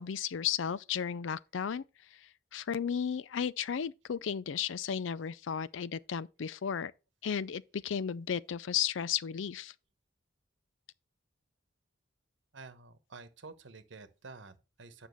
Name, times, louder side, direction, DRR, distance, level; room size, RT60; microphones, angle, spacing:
voice 1, 0.0-1.8 2.5-6.9 7.2-9.7, left 8 dB, 75° left, 0.4 m, -34 dB
voice 2, 12.5-15.1, right 3 dB, 75° right, 1.0 m, -50 dB
9.4 x 5.8 x 3.1 m
head